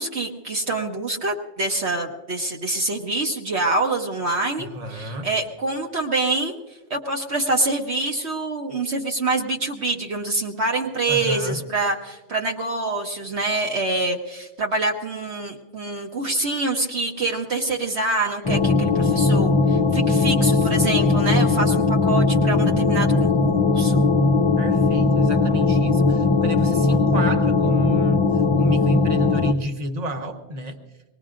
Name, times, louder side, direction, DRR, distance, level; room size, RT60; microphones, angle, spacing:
voice 1, 0.0-6.6 6.9-24.0, right 2 dB, 55° right, 1 dB, 1.2 m, -26 dB
voice 2, 4.6-5.3 11.1-11.6 19.9-20.9 24.6-30.8, equal, 30° right, 5 dB, 1.1 m, -32 dB
sound 1, 18.4-29.5, left 3 dB, 35° left, 0.5 m, -19 dB
24.0 x 19.5 x 2.5 m, 1.2 s
omnidirectional pair, 1.4 m